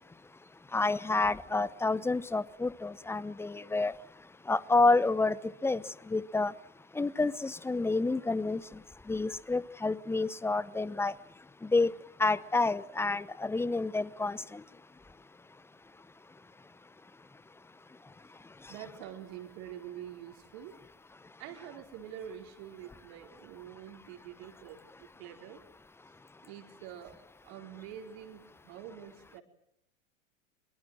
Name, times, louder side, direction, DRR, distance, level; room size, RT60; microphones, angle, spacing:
voice 1, 0.7-3.9 4.5-5.4 5.6-5.8 6.1-6.5 7.0-8.6 9.1-11.1 11.7-11.9 12.2-14.4, left 3 dB, 5° left, 19 dB, 0.9 m, -28 dB
voice 2, 18.7-20.7 21.4-25.6 26.4-27.2 27.4-29.4, right 10 dB, 55° right, 5 dB, 4.5 m, -46 dB
23.0 x 22.5 x 7.7 m, 0.77 s
figure-of-eight pair, 90°, 38 cm